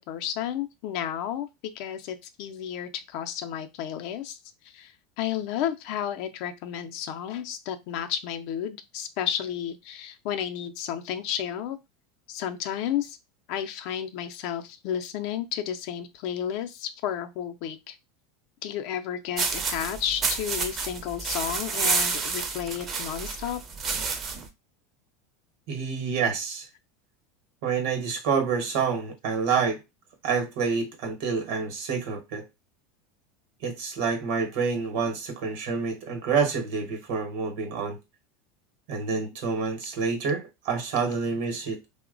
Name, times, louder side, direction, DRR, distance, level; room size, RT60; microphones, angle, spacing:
voice 1, 0.0-1.5 1.7-4.4 4.6-11.8 12.3-13.2 13.5-17.9 18.6-23.6 39.1-39.2, left 10 dB, 60° left, 0.4 m, -32 dB
sound 1, 19.4-24.5, right 4 dB, 35° right, 0.5 m, -29 dB
voice 2, 25.7-26.6 27.6-29.8 30.2-32.4 33.6-38.0 38.9-41.9, right 5 dB, 65° right, 0.9 m, -28 dB
2.9 x 2.1 x 2.4 m
hypercardioid pair, 95°, 0 cm